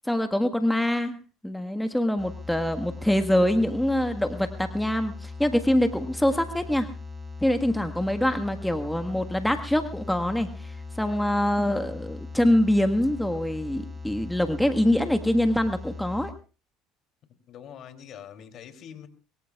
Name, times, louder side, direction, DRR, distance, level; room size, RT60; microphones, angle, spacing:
voice 1, 0.0-1.2 1.4-6.9 7.4-16.3, left 1 dB, 5° left, 7 dB, 1.6 m, -24 dB
sound 1, 2.2-16.3, left 4 dB, 20° right, 5.7 m, -39 dB
voice 2, 17.5-19.1, left 9 dB, 50° left, 8 dB, 3.1 m, -44 dB
23.0 x 23.0 x 2.4 m, 0.37 s
hypercardioid pair, 70°, 0 cm